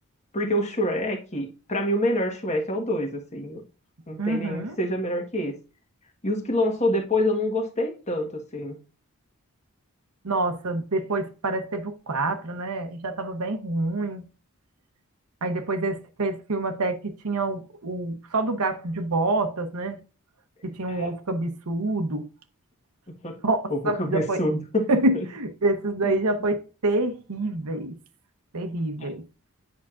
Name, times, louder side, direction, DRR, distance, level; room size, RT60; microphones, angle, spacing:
voice 1, 0.3-3.6 4.1-5.5 6.2-8.8 20.8-21.1 23.2-23.4 23.7-25.2 26.0-26.2 29.0-29.1, left 1 dB, 30° left, 1.3 m, -27 dB
voice 2, 4.2-4.8 10.2-14.3 15.4-20.0 20.6-22.3 23.4-24.4 24.9-28.0 28.5-29.2, right 2 dB, 80° right, 0.9 m, -27 dB
8.5 x 5.7 x 2.5 m
head